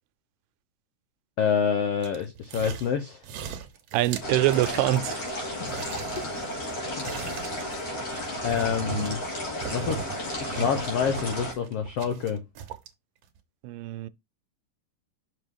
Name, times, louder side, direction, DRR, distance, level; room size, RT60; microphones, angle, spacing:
voice 1, 1.4-3.2 5.6-5.8 8.4-9.2 9.7-10.1 10.4-12.4, left 7 dB, 85° left, 1.3 m, -27 dB
sound 1, 2.0-3.0 3.2-5.3 5.6-9.3 9.6-10.2 10.5-12.9 13.4-13.5, right 7 dB, 65° right, 1.7 m, -38 dB
voice 2, 3.9-5.2 8.1-8.3 13.6-14.1, right 15 dB, 90° right, 2.3 m, -25 dB
sound 2, 4.2-11.5, left 1 dB, 50° left, 3.6 m, -33 dB
6.2 x 5.5 x 3.5 m
omnidirectional pair, 3.9 m